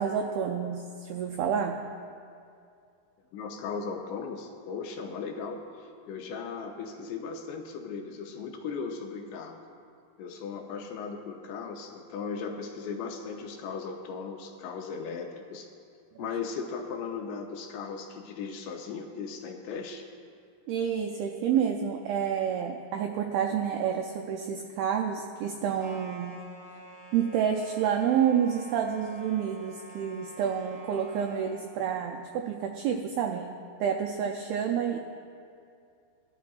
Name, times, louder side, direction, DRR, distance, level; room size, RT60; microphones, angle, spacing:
voice 1, 0.0-1.8 16.2-16.3 20.7-26.4 27.1-33.5 33.8-35.0, right 8 dB, 85° right, 3 dB, 2.2 m, -29 dB
voice 2, 3.3-9.6 10.2-15.7 16.2-20.0, left 5 dB, 85° left, 3 dB, 3.0 m, -37 dB
sound 1, 25.8-31.8, equal, 30° right, 1.9 m, -48 dB
21.0 x 12.0 x 2.4 m, 2.4 s
omnidirectional pair, 4.9 m